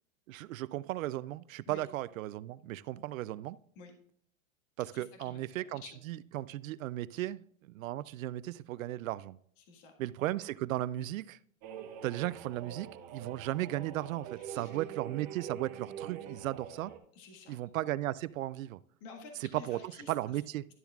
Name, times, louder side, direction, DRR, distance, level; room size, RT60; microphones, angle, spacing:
voice 1, 0.3-3.6 4.8-9.4 10.0-11.4 12.0-16.9 17.5-18.8 19.7-19.8 20.1-20.6, right 15 dB, 75° right, 0.5 m, -36 dB
voice 2, 4.9-5.4 5.7-6.0 7.1-7.3 9.6-9.9 14.4-14.7 17.1-17.6 19.0-20.4, left 4 dB, 40° left, 1.7 m, -51 dB
sound 1, 11.6-17.0, right 9 dB, 20° right, 0.5 m, -45 dB
12.0 x 7.0 x 2.4 m
supercardioid pair, 150°, 40 cm